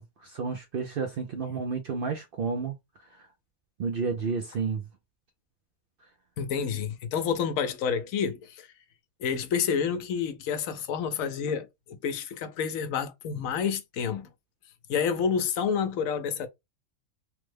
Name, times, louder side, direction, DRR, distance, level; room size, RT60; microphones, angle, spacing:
voice 1, 0.0-2.8 3.8-4.8, right 5 dB, 60° right, 0.6 m, -31 dB
voice 2, 6.4-8.7 9.2-14.3 14.9-16.5, left 7 dB, 80° left, 1.0 m, -29 dB
3.2 x 2.0 x 3.2 m
omnidirectional pair, 1.4 m